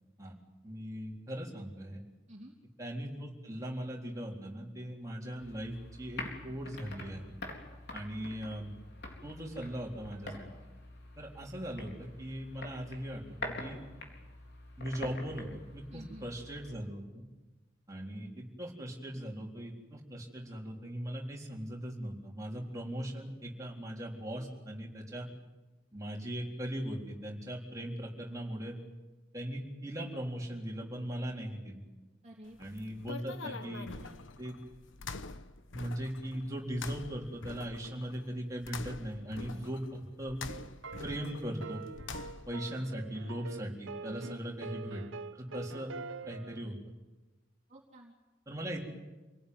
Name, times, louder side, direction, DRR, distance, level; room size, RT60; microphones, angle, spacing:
voice 1, 0.6-2.0 2.8-7.2 7.9-8.7 9.2-10.5 11.2-13.8 14.8-17.2 17.9-25.3 25.9-28.8 29.3-31.8 32.6-33.9 34.4-34.6 35.7-40.4 41.0-41.8 42.5-45.0 45.3-45.9 46.3-46.8 48.5-48.8, equal, 15° right, -2 dB, 4.0 m, -39 dB
sound 1, 5.4-16.8, left 2 dB, 55° left, 4.1 m, -46 dB
voice 2, 15.9-16.3 32.2-32.6 33.5-34.2 39.5-39.7 44.1-44.3 47.7-48.1, right 1 dB, 35° right, -1 dB, 2.9 m, -51 dB
sound 2, 32.5-42.7, left 4 dB, 75° left, 1.1 m, -46 dB
sound 3, 40.5-46.6, right 4 dB, 80° right, 0.9 m, -45 dB
27.5 x 18.5 x 9.6 m, 1.1 s
head